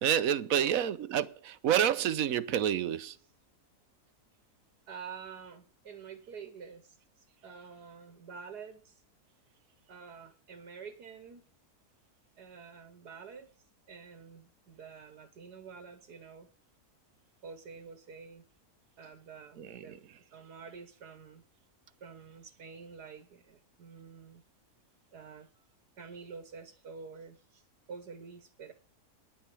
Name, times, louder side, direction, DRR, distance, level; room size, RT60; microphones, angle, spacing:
voice 1, 0.0-3.2 19.6-20.0, right 9 dB, 65° right, 1.1 m, -29 dB
voice 2, 0.5-0.9 4.9-9.0 9.9-11.4 12.4-13.5 13.9-16.5 17.4-18.4 19.0-21.4 22.0-24.4 25.1-25.5 26.0-27.6 27.9-28.7, right 6 dB, 90° right, 1.8 m, -48 dB
10.5 x 9.2 x 6.9 m
omnidirectional pair, 1.7 m